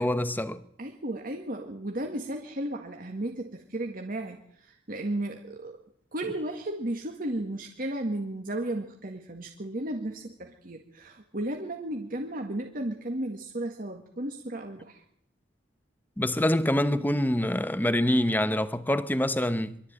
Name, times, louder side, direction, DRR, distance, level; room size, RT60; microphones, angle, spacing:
voice 1, 0.0-0.6 16.2-19.8, left 1 dB, 10° left, 1.0 m, -25 dB
voice 2, 0.8-5.8 6.1-15.0, right 1 dB, 50° right, 1.9 m, -34 dB
24.0 x 13.0 x 8.9 m
head